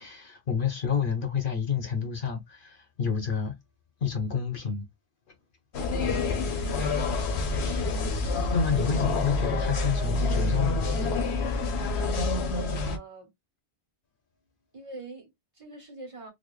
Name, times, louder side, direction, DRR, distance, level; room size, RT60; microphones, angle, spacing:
voice 1, 0.0-3.5 4.0-4.8 8.5-10.9, left 6 dB, 55° left, 0.9 m, -29 dB
sound 1, 5.7-13.0, left 3 dB, 75° left, 1.1 m, -27 dB
voice 2, 6.6-7.3 12.5-13.3 14.7-16.3, right 3 dB, 30° right, 1.4 m, -43 dB
4.1 x 2.0 x 3.1 m
omnidirectional pair, 1.1 m